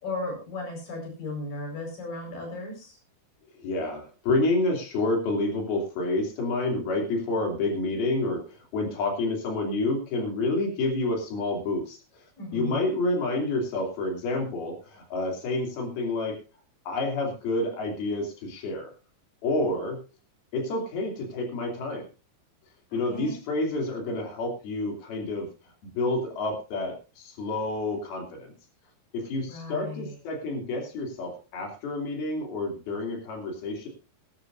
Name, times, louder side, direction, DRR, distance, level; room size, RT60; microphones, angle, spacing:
voice 1, 0.0-3.0 12.4-12.8 22.9-23.4 29.5-30.2, left 2 dB, 65° left, 2 dB, 6.6 m, -36 dB
voice 2, 3.5-12.2 12.5-16.4 16.9-18.9 19.4-20.0 20.5-22.1 22.9-25.5 26.0-28.5 29.1-33.9, left 2 dB, 85° left, 3 dB, 4.9 m, -29 dB
20.5 x 12.0 x 2.6 m, 0.31 s
omnidirectional pair, 4.3 m